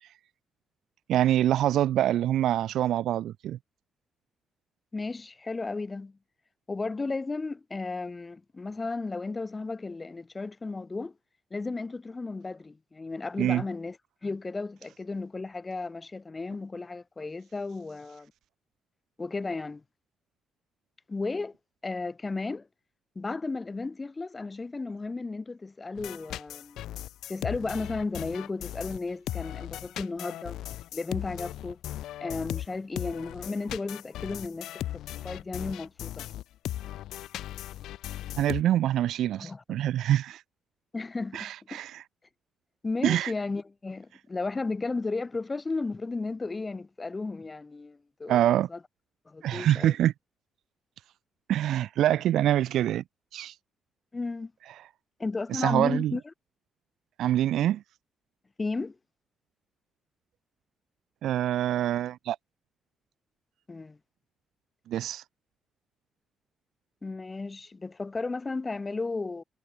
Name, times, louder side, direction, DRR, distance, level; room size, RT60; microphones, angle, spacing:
voice 1, 1.1-3.6 13.4-13.6 38.4-40.4 41.3-42.0 43.0-43.3 48.3-48.7 49.4-50.1 51.5-53.0 53.3-53.5 55.5-56.1 57.2-57.8 61.2-62.4 64.9-65.2, right 12 dB, 75° right, 0.7 m, -25 dB
voice 2, 4.9-6.2 6.7-11.1 11.5-14.0 14.2-18.3 19.2-19.8 21.1-21.5 21.8-22.7 23.1-26.8 27.3-30.6 30.9-31.8 32.2-36.3 39.4-39.8 40.9-41.8 42.8-48.4 48.7-48.8 49.3-49.9 54.1-54.5 55.2-56.2 58.6-58.9 63.7-64.0 67.0-69.4, left 3 dB, 25° left, 6.5 m, -34 dB
sound 1, 26.0-38.6, left 13 dB, 80° left, 1.5 m, -37 dB
cardioid pair, 90°, 0 cm